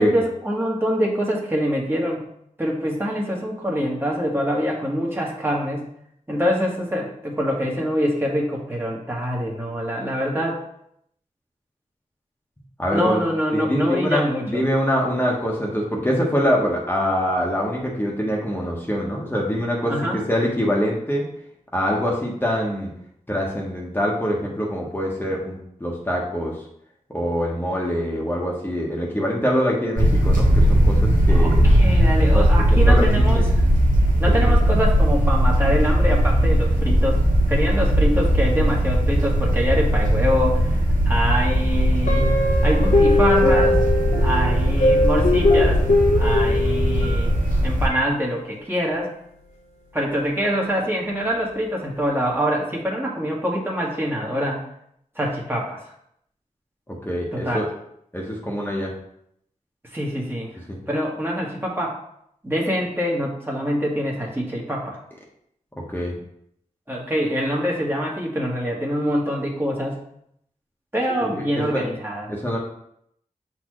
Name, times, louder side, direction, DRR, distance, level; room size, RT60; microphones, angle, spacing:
voice 1, 0.0-2.3 2.6-5.9 6.3-10.6 12.9-14.6 19.9-20.2 31.3-33.5 34.2-40.8 41.0-42.3 42.6-43.8 44.2-45.8 46.2-47.3 47.6-49.1 49.9-54.6 55.1-55.8 57.3-57.7 59.9-60.5 60.9-62.0 62.4-65.0 66.9-70.0 70.9-72.3, equal, 15° right, -3 dB, 1.6 m, -25 dB
voice 2, 12.8-13.3 13.5-19.9 20.3-21.2 21.7-22.9 23.3-26.6 27.1-31.6 32.3-32.5 32.8-33.5 34.4-34.5 56.9-57.7 58.1-58.9 60.7-60.8 65.9-66.2 71.2-71.3 71.7-71.9 72.3-72.6, equal, 15° left, -3 dB, 1.3 m, -24 dB
sound 1, 30.0-47.9, equal, 80° right, 1.3 m, -18 dB
Guitar, 42.1-44.5 45.2-47.2, left 3 dB, 75° left, 1.2 m, -21 dB
sound 2, 42.1-47.6 47.9-48.1, equal, 60° left, 1.6 m, -26 dB
7.0 x 4.3 x 3.2 m, 0.73 s
cardioid pair, 55°, 14 cm